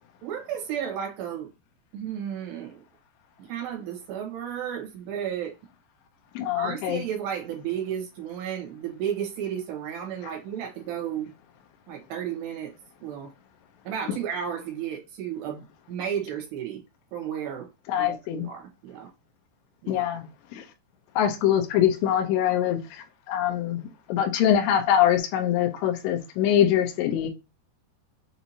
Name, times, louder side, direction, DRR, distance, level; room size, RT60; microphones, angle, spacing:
voice 1, 0.2-1.5 1.9-2.8 3.4-5.6 6.6-11.3 11.9-12.7 13.0-13.3 13.8-16.8 17.1-17.7 18.0-19.1 19.8-20.1, right 9 dB, 75° right, 3.0 m, -33 dB
voice 2, 6.4-7.0 17.9-18.5 19.9-20.2 20.5-20.6 21.2-22.8 23.3-23.8 24.1-27.3, left 10 dB, 85° left, 2.9 m, -23 dB
6.9 x 2.7 x 2.8 m
omnidirectional pair, 5.2 m